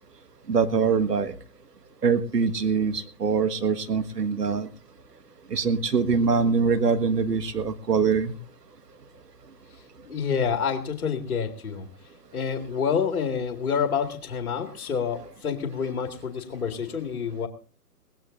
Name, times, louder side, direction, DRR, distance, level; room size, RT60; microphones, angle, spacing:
voice 1, 0.5-1.3 2.0-4.7 5.5-8.3, right 5 dB, 90° right, 10 dB, 1.6 m, -23 dB
voice 2, 10.1-11.9 12.3-17.5, left 6 dB, 65° left, 6 dB, 2.2 m, -28 dB
21.0 x 18.0 x 2.6 m, 0.36 s
hypercardioid pair, 140°, 47 cm